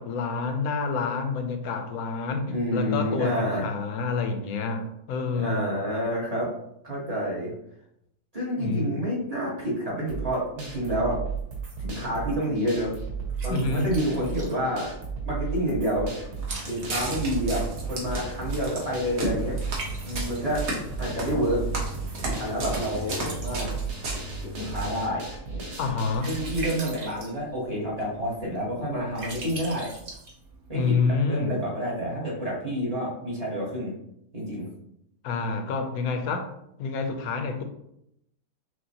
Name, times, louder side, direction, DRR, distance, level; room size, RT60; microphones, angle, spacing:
voice 1, 0.0-5.8 8.6-9.0 13.5-13.9 25.8-26.4 30.7-31.6 35.2-36.5 36.8-37.6, left 4 dB, 75° left, 6 dB, 1.0 m, -28 dB
voice 2, 2.4-3.7 5.3-6.5 6.8-7.5 8.3-11.2 11.8-12.9 13.4-14.9 15.2-16.1 16.7-19.6 20.0-20.6 21.0-21.7 22.3-23.7 24.4-25.7 26.2-29.9 30.7-34.0 34.3-34.7, equal, 25° right, -6 dB, 1.3 m, -29 dB
sound 1, 10.1-26.8, right 5 dB, 85° right, 1.5 m, -34 dB
Liquid, 11.4-30.9, right 2 dB, 40° right, 0.9 m, -44 dB
Walk footsteps, 16.4-25.0, right 1 dB, 65° right, 1.4 m, -35 dB
6.1 x 2.5 x 2.8 m, 0.77 s
omnidirectional pair, 1.7 m